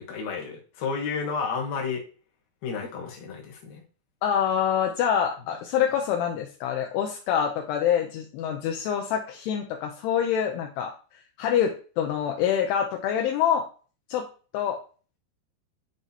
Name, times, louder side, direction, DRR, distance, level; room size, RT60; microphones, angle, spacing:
voice 1, 0.0-2.0 2.6-3.8, left 5 dB, 65° left, -1 dB, 2.7 m, -31 dB
voice 2, 4.2-13.7 14.1-14.3 14.5-14.8, left 8 dB, 80° left, 2 dB, 2.6 m, -26 dB
9.9 x 3.8 x 2.7 m, 0.38 s
omnidirectional pair, 5.0 m